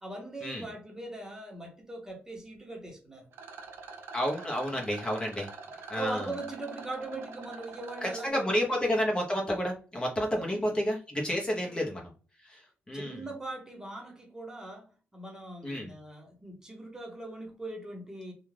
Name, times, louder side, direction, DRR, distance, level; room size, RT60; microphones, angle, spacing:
voice 1, 0.0-3.3 4.6-4.8 5.9-9.0 10.4-10.7 11.5-11.9 12.9-18.3, right 2 dB, 15° right, 0.9 m, -41 dB
Rattle, 3.3-8.3, right 4 dB, 80° right, 0.6 m, -45 dB
voice 2, 4.1-5.5 5.9-6.3 8.0-12.0 12.4-12.6 12.9-13.2 15.6-15.9, equal, 25° left, 0.8 m, -30 dB
2.4 x 2.3 x 3.2 m
cardioid pair, 85°, 4 cm